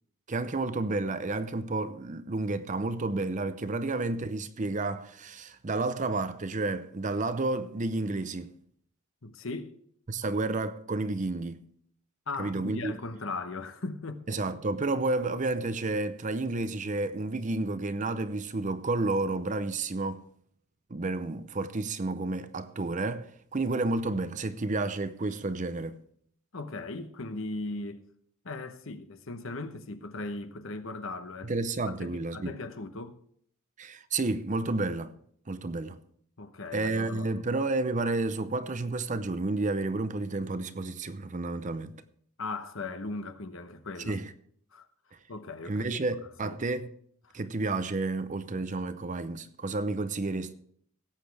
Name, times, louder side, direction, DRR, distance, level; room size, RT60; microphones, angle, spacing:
voice 1, 0.3-8.5 10.1-11.6 12.4-12.9 14.3-20.2 20.9-26.0 31.4-32.5 33.8-35.1 35.5-36.0 36.7-41.9 44.0-44.3 45.7-46.9 47.3-50.5, right 2 dB, 35° right, 0.6 m, -31 dB
voice 2, 9.2-9.7 12.3-14.2 26.5-28.0 28.4-31.5 32.0-33.2 36.4-37.4 42.4-44.2 44.7-44.9 45.3-45.9 46.4-46.6 47.3-47.4, left 3 dB, 60° left, 1.0 m, -38 dB
17.5 x 8.2 x 3.4 m
head